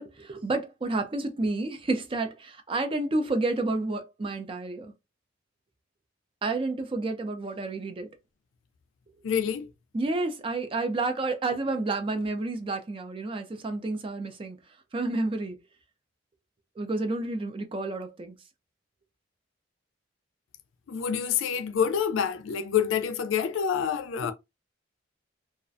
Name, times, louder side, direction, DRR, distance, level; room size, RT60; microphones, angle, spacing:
voice 1, 0.0-4.9 6.4-8.1 9.9-14.6 14.9-15.6 16.8-18.3 24.2-24.3, right 2 dB, 25° right, 0.4 m, -30 dB
voice 2, 9.2-9.7 20.9-24.3, left 7 dB, 80° left, 0.4 m, -27 dB
2.4 x 2.1 x 2.5 m
head